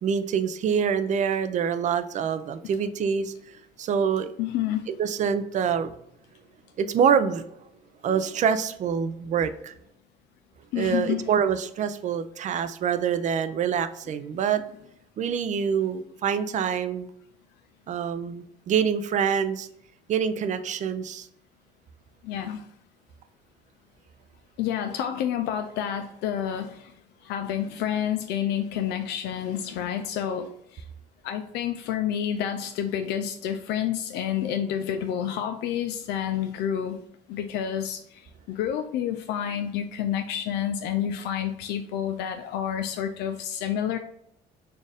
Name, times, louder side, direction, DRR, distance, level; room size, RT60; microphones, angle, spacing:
voice 1, 0.0-3.3 3.8-4.3 5.0-5.9 6.8-7.5 8.0-9.7 10.8-14.6 15.2-17.1 17.9-19.7 20.1-21.3, right 7 dB, 45° right, 10 dB, 0.4 m, -25 dB
voice 2, 4.4-4.9 10.7-11.3 22.2-22.7 24.6-26.9 27.2-30.8 31.2-37.0 37.3-44.0, left 9 dB, 85° left, 7 dB, 0.4 m, -29 dB
4.2 x 2.5 x 3.4 m, 0.73 s
cardioid pair, 110°, 17 cm